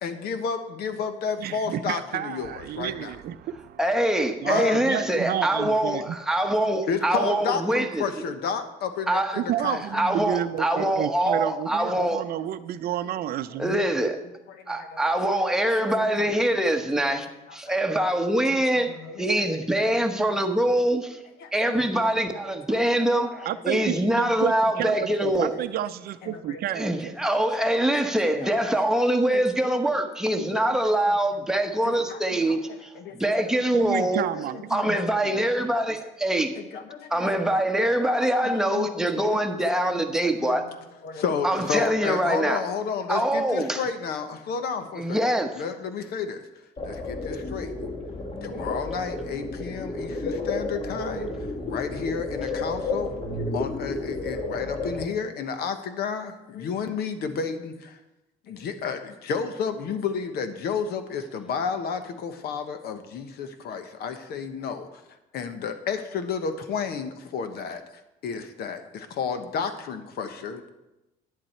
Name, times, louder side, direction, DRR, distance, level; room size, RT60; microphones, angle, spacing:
voice 1, 0.0-3.1 4.4-4.8 6.7-9.8 14.5-15.4 15.8-16.3 16.7-17.0 17.5-17.8 18.5-20.4 21.4-21.9 22.9-23.3 23.8-23.9 24.4-24.5 24.8-25.0 26.2-26.6 27.8-27.9 28.2-28.7 29.3-29.4 29.9-30.0 30.3-30.9 31.8-33.5 34.3-34.9 35.3-35.4 35.7-35.8 36.5-37.6 38.3-40.8 41.0-45.2 45.5-46.5 46.8-47.7 48.4-53.1 53.5-58.0 58.5-65.0 65.3-67.8 68.2-70.7, left 6 dB, 70° left, 1.2 m, -32 dB
voice 2, 1.4-3.8 4.4-6.2 9.4-13.9 23.4-27.1 33.7-35.4, right 11 dB, 65° right, 0.6 m, -30 dB
voice 3, 3.8-8.0 9.1-9.4 9.7-12.2 13.6-14.2 14.7-17.3 17.5-21.2 21.5-23.3 23.6-25.5 26.8-34.3 34.7-36.5 37.1-40.6 41.4-42.6 43.1-43.8 45.0-45.5, right 1 dB, 5° right, 1.1 m, -24 dB
sound 1, 46.8-55.1, left 2 dB, 35° left, 1.7 m, -31 dB
11.0 x 9.8 x 4.4 m
cardioid pair, 110°, 17 cm